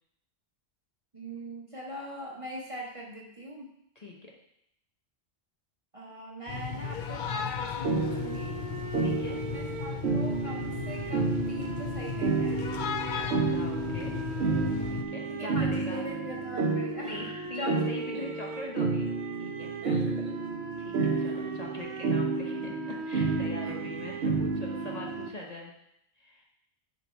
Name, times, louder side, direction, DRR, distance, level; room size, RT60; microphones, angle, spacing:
voice 1, 1.1-3.7 5.9-8.6 9.5-12.6 15.3-17.8 18.1-18.2 19.8-20.4 21.0-21.5 23.6-23.8, equal, 30° right, -3 dB, 1.0 m, -41 dB
voice 2, 4.0-4.3 9.0-9.4 13.2-14.1 14.9-16.0 17.1-19.1 19.4-19.7 20.8-25.7 26.2-26.4, left 2 dB, 35° left, -2 dB, 1.1 m, -42 dB
sound 1, 6.5-15.0, left 6 dB, 55° left, 0.6 m, -36 dB
sound 2, 7.8-25.3, right 4 dB, 70° right, 0.9 m, -31 dB
9.7 x 3.2 x 4.4 m, 0.77 s
omnidirectional pair, 1.2 m